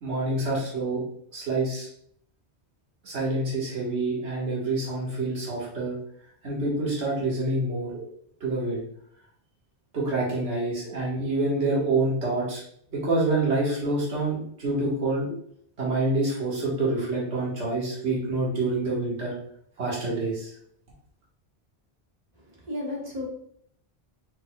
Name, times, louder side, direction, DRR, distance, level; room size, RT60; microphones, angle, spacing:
voice 1, 0.0-1.0 1.3-1.9 3.0-6.0 6.4-8.1 8.4-8.8 9.9-12.6 12.9-15.3 15.8-19.3 19.8-20.5, right 2 dB, 90° right, -6 dB, 1.7 m, -27 dB
voice 2, 22.4-23.2, left 1 dB, 40° right, -4 dB, 1.5 m, -34 dB
5.4 x 4.0 x 2.2 m, 0.65 s
omnidirectional pair, 1.1 m